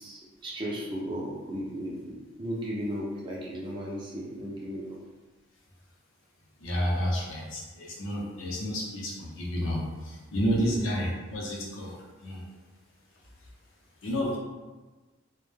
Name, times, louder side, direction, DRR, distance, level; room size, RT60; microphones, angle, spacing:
voice 1, 0.0-5.0 10.5-10.8, equal, 20° right, -4 dB, 0.4 m, -35 dB
voice 2, 6.6-11.9 12.2-12.4 14.0-14.4, equal, 65° left, -4 dB, 0.6 m, -30 dB
2.2 x 2.1 x 3.1 m, 1.2 s
head